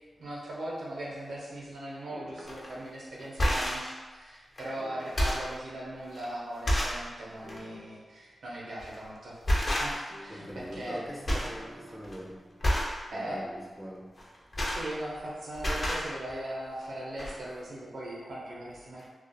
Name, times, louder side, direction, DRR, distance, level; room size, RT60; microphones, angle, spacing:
voice 1, 0.2-9.4 9.8-11.0 13.1-13.4 14.7-19.1, right 1 dB, 85° right, 0.6 m, -39 dB
sound 1, 2.1-2.9 4.7-5.6 7.4-8.3 10.1-12.8, left 1 dB, 90° left, 1.0 m, -51 dB
voice 2, 2.4-2.8 10.3-12.5 13.1-14.1 19.0-19.1, equal, 5° right, 0.4 m, -43 dB
sound 2, 2.5-2.7 3.2-3.9 4.6-4.7 5.0-5.5 6.1-6.2 6.6-7.0 7.4-7.6 8.8-9.0 9.4-10.2 10.5-11.0 11.2-11.6 11.9-12.1 12.6-13.0 14.2-15.3 15.5-16.1 16.9-17.0 17.2-17.3, equal, 45° left, 0.6 m, -29 dB
2.4 x 2.0 x 2.6 m
cardioid pair, 45°, 0 cm